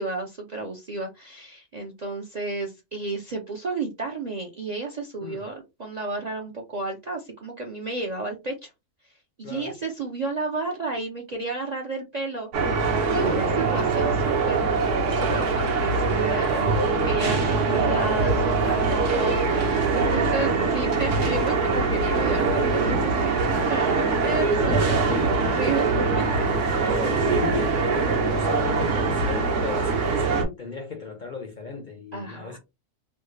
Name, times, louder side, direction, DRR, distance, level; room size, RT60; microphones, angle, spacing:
voice 1, 0.0-8.7 9.4-12.8 13.1-14.6 15.1-26.3 26.9-27.1 32.1-32.6, right 3 dB, 45° right, 0.5 m, -32 dB
sound 1, 12.5-30.4, right 4 dB, 60° right, 1.2 m, -23 dB
voice 2, 13.2-13.7 16.6-17.6 19.9-20.0 24.6-25.9 26.9-32.6, left 5 dB, 50° left, 0.6 m, -36 dB
3.4 x 2.3 x 3.1 m
omnidirectional pair, 1.4 m